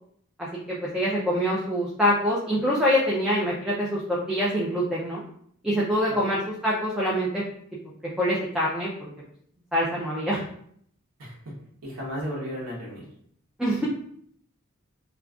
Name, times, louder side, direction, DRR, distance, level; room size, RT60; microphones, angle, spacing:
voice 1, 0.7-5.2 5.6-7.4 8.2-8.9 9.7-10.4 13.6-13.9, equal, 5° right, -6 dB, 0.4 m, -25 dB
voice 2, 11.8-13.0, equal, 90° right, -4 dB, 0.9 m, -34 dB
2.4 x 2.3 x 3.4 m, 0.66 s
head